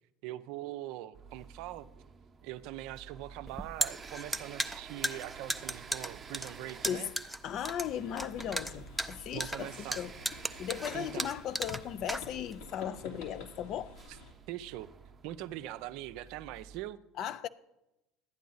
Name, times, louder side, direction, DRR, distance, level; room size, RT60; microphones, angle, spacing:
voice 1, 0.2-1.9 2.4-7.1 9.3-10.0 10.9-11.3 14.1-14.2 14.5-14.9 15.2-17.0, right 14 dB, 65° right, 0.5 m, -42 dB
sound 1, 1.1-16.8, right 5 dB, 25° right, 0.8 m, -51 dB
sound 2, 3.5-12.7, right 1 dB, ahead, 0.6 m, -36 dB
voice 2, 7.4-10.1 10.6-13.9 17.2-17.5, left 9 dB, 50° left, 0.5 m, -37 dB
sound 3, 7.7-14.3, left 3 dB, 70° left, 2.3 m, -50 dB
12.0 x 9.2 x 4.0 m
hypercardioid pair, 75°, 0 cm